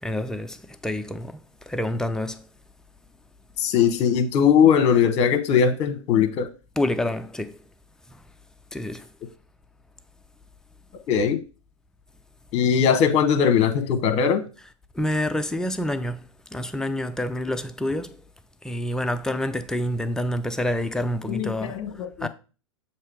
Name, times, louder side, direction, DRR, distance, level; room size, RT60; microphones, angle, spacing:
voice 1, 0.0-2.5 6.8-7.6 8.1-8.2 8.7-9.1 14.9-18.2 18.6-22.3, left 1 dB, 5° left, 0.4 m, -28 dB
voice 2, 3.6-6.5 11.1-11.4 12.5-14.4 21.3-22.3, left 7 dB, 40° left, 1.1 m, -20 dB
7.2 x 2.8 x 4.8 m
figure-of-eight pair, 100°, 17 cm